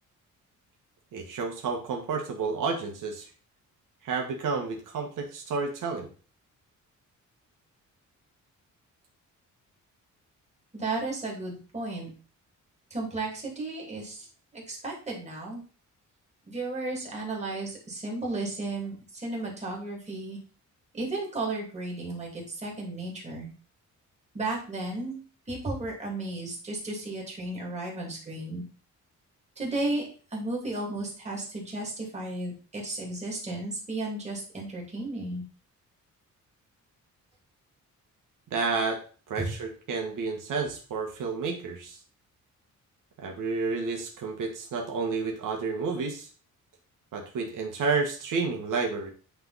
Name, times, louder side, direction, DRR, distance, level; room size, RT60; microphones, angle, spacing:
voice 1, 1.1-3.3 4.0-6.1 38.5-39.0 39.3-42.0 43.2-46.3 47.1-49.1, right 4 dB, 85° right, 2 dB, 1.4 m, -30 dB
voice 2, 10.7-12.1 12.9-14.3 14.5-15.6 16.5-20.4 20.9-23.5 24.3-25.2 25.5-28.6 29.6-35.4 39.4-39.5, right 2 dB, 20° right, -2 dB, 2.4 m, -34 dB
8.8 x 3.5 x 4.0 m, 0.39 s
wide cardioid pair, 150°, 31 cm